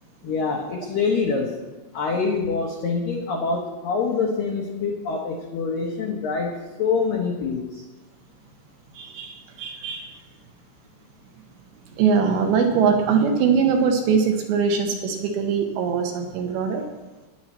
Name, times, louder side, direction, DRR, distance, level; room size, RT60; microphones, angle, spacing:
voice 1, 0.2-1.6 1.9-7.8, left 4 dB, 75° left, -1 dB, 2.0 m, -25 dB
voice 2, 8.9-10.1 11.9-16.8, right 6 dB, 70° right, 3 dB, 3.0 m, -22 dB
15.5 x 10.5 x 4.3 m, 1.2 s
omnidirectional pair, 5.7 m